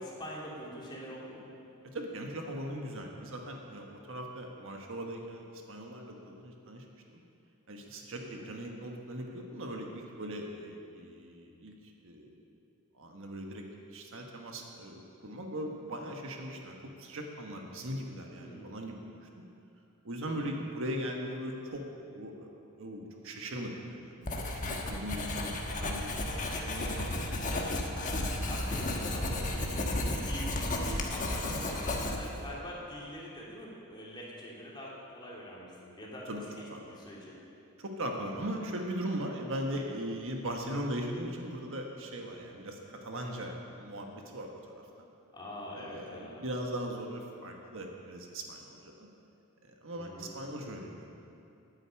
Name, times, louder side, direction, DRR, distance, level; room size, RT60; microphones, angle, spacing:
voice 1, 0.0-1.4 8.2-8.5 18.3-18.8 20.3-20.6 28.2-37.4 45.3-46.5 50.0-50.3, equal, 20° left, -5 dB, 2.8 m, -44 dB
voice 2, 1.9-6.8 7.1-7.2 7.7-11.7 12.0-12.3 12.9-13.7 13.9-19.3 20.0-21.8 22.1-22.5 22.8-24.3 24.7-27.4 27.8-28.5 36.3-36.4 36.7-37.0 37.8-44.9 45.7-49.1 49.6-51.2, equal, 60° right, 2 dB, 1.4 m, -39 dB
Writing, 24.3-32.5, left 1 dB, 35° left, 1.3 m, -33 dB
10.5 x 9.4 x 8.6 m, 2.7 s
head